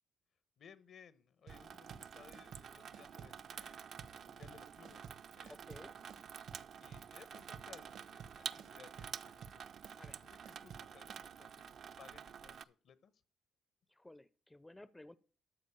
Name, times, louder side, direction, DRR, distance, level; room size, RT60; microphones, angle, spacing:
voice 1, 0.6-6.0 6.8-9.7 10.2-13.1, left 7 dB, 65° left, 16 dB, 0.9 m, -61 dB
Water tap faucet / Sink (filling or washing), 1.5-12.6, right 7 dB, 60° right, 0.4 m, -50 dB
sound 1, 1.5-11.2, right 7 dB, 75° right, 1.0 m, -54 dB
voice 2, 5.5-5.9 10.0-10.2 14.0-15.2, left 1 dB, 10° left, 17 dB, 0.4 m, -55 dB
13.0 x 4.5 x 6.9 m, 0.43 s
cardioid pair, 90°, 0 cm